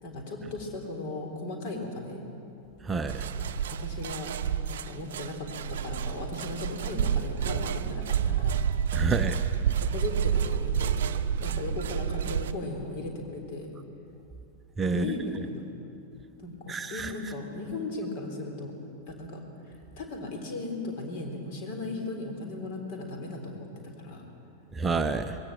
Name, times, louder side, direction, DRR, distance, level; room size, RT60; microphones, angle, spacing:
voice 1, 0.0-2.2 3.2-3.3 3.7-4.3 4.7-8.6 9.9-11.1 11.4-13.7 14.8-15.7 16.4-18.7 19.1-24.2, left 2 dB, 50° left, 3 dB, 3.8 m, -37 dB
voice 2, 2.9-3.3 8.9-9.4 14.8-15.0 16.7-17.1 24.8-25.4, right 4 dB, 15° right, 7 dB, 0.7 m, -28 dB
sound 1, 3.1-12.5, right 8 dB, 60° right, 0.7 m, -29 dB
21.0 x 17.0 x 7.5 m, 2.7 s
figure-of-eight pair, 90°, 0 cm